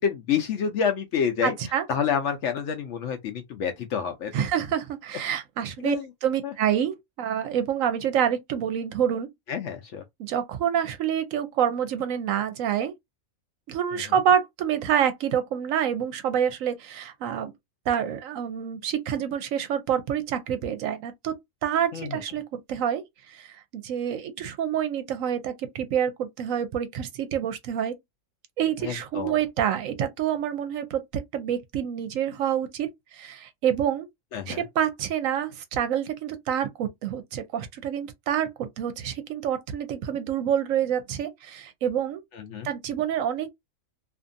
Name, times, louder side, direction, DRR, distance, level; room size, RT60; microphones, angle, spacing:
voice 1, 0.0-1.5 1.9-4.3 5.8-6.0 6.4-6.5 9.5-10.0 21.9-22.1 28.8-29.4 34.3-34.6 42.3-42.7, left 7 dB, 65° left, 0.7 m, -28 dB
voice 2, 1.4-1.9 4.3-6.0 6.2-9.3 10.2-12.9 13.7-17.5 17.9-21.4 21.6-27.9 28.6-31.0 31.3-34.1 34.5-42.2 42.6-43.5, right 9 dB, 70° right, 0.9 m, -27 dB
2.5 x 2.5 x 2.5 m
omnidirectional pair, 1.5 m